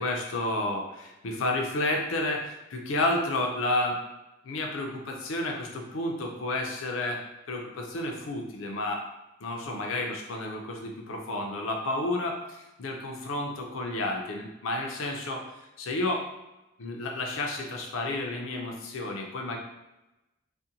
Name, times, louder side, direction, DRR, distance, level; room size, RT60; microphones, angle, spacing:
voice 1, 0.0-4.0 4.4-7.2 7.5-9.0 9.4-16.3 16.8-19.6, left 2 dB, 70° left, 1 dB, 0.5 m, -31 dB
2.5 x 2.1 x 2.7 m, 0.97 s
head